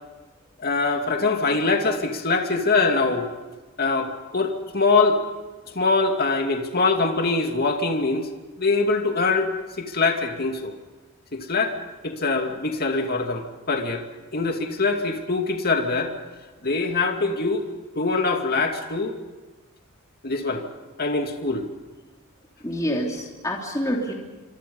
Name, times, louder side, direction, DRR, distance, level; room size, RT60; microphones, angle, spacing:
voice 1, 0.6-3.3 3.8-5.2 5.7-8.3 8.6-9.5 9.8-10.7 11.3-11.8 12.0-14.0 14.3-16.1 16.6-17.7 17.9-19.2 20.2-20.6 21.0-21.7, left 3 dB, 45° left, 4 dB, 2.6 m, -23 dB
voice 2, 22.6-24.1, equal, 15° left, -1 dB, 3.1 m, -27 dB
27.0 x 25.5 x 5.5 m, 1.3 s
head